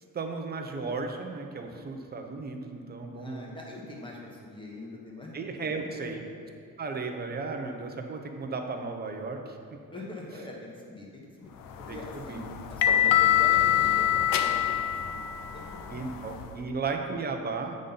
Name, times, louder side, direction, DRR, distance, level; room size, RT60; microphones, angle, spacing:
voice 1, 0.1-3.5 5.3-6.2 6.8-9.6 10.3-10.4 11.9-12.6 12.9-13.3 15.9-17.8, right 4 dB, 30° right, 4 dB, 0.7 m, -35 dB
voice 2, 3.2-5.3 5.9-6.1 9.9-11.5 11.9-12.4 12.7-14.6 15.0-15.3 15.5-16.1, left 1 dB, 15° left, -2 dB, 1.3 m, -43 dB
sound 1, 11.7-16.5, left 11 dB, 70° left, 0.6 m, -25 dB
8.4 x 3.8 x 5.5 m, 2.5 s
cardioid pair, 135°, 35 cm